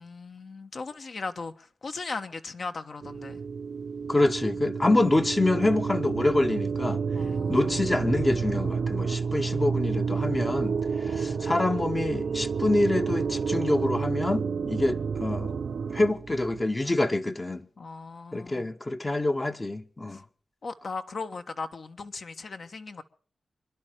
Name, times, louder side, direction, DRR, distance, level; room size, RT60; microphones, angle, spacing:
voice 1, 0.0-3.4 7.1-7.8 9.2-9.8 11.0-11.6 17.8-18.7 20.1-20.2 20.6-23.0, left 4 dB, 60° left, 1.4 m, -38 dB
sound 1, 3.0-16.7, right 5 dB, 75° right, 0.9 m, -30 dB
voice 2, 4.1-7.0 7.5-10.8 11.0-15.6 15.9-17.7 18.3-20.2, left 2 dB, 25° left, 1.0 m, -26 dB
26.5 x 11.5 x 4.8 m
wide cardioid pair, 90°, 0 cm